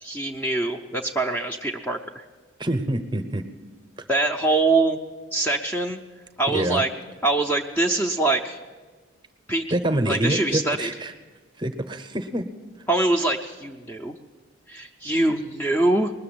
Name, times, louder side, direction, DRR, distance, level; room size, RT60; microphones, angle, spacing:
voice 1, 0.0-2.2 4.1-5.0 5.3-6.0 6.4-6.9 7.2-8.6 9.5-9.6 10.1-10.9 12.9-14.1 14.7-16.1, right 2 dB, 10° left, 2 dB, 0.5 m, -23 dB
voice 2, 2.6-3.4 6.5-6.8 9.7-11.1 11.6-12.5, right 1 dB, 20° right, 7 dB, 0.7 m, -26 dB
20.0 x 6.9 x 8.5 m, 1.4 s
head